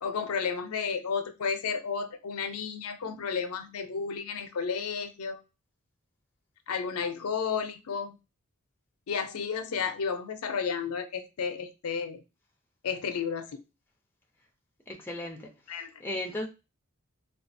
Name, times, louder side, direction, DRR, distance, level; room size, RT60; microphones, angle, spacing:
voice 1, 0.0-5.4 6.7-8.2 9.1-12.2 12.8-13.6 15.7-15.9, left 6 dB, 85° left, 0.5 m, -32 dB
voice 2, 14.9-16.5, left 1 dB, 10° left, 0.4 m, -37 dB
3.2 x 2.3 x 2.5 m
head